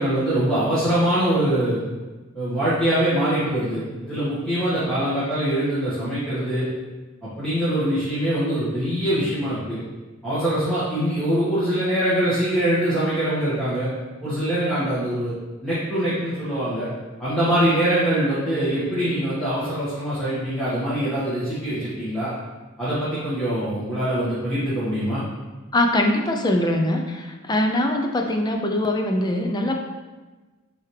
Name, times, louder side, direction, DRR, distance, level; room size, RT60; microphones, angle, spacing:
voice 1, 0.0-1.8 2.3-6.7 7.2-9.8 10.2-13.9 14.2-15.3 15.6-16.9 17.2-22.3 22.8-25.2, right 1 dB, 5° left, -13 dB, 1.5 m, -23 dB
voice 2, 25.7-29.9, left 1 dB, 20° left, 3 dB, 0.4 m, -22 dB
8.9 x 3.5 x 3.2 m, 1.2 s
head